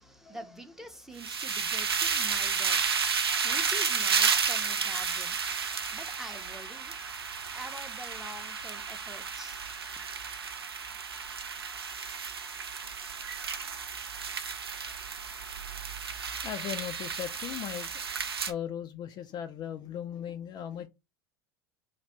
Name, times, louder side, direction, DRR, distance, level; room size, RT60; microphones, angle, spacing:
voice 1, 0.0-7.0 7.5-9.9, right 1 dB, 5° right, 0.6 m, -46 dB
sound 1, 1.2-18.5, right 6 dB, 80° right, 0.5 m, -32 dB
voice 2, 16.4-17.9 18.5-20.9, left 10 dB, 35° left, 0.4 m, -38 dB
3.3 x 2.4 x 4.1 m
figure-of-eight pair, 85°, 13 cm